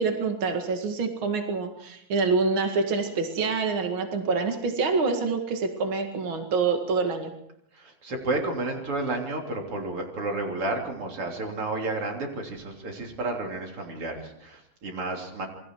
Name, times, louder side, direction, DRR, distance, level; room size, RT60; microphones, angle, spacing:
voice 1, 0.0-7.3, right 4 dB, 70° right, 4 dB, 1.2 m, -26 dB
voice 2, 7.7-15.5, right 2 dB, 30° right, 2 dB, 3.5 m, -31 dB
27.5 x 22.5 x 4.7 m, 0.72 s
omnidirectional pair, 5.7 m